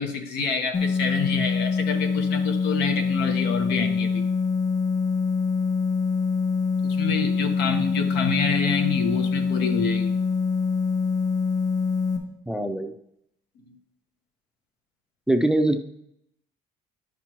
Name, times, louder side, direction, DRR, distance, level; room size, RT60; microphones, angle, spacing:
voice 1, 0.0-4.2 6.8-10.1 13.6-13.7, left 5 dB, 85° left, 5 dB, 1.1 m, -28 dB
sound 1, 0.7-12.2, left 5 dB, 45° left, 1.8 m, -24 dB
voice 2, 12.5-12.9 15.3-15.8, right 1 dB, 5° right, 8 dB, 0.4 m, -22 dB
10.0 x 5.8 x 3.0 m, 0.79 s
cardioid pair, 110°, 17 cm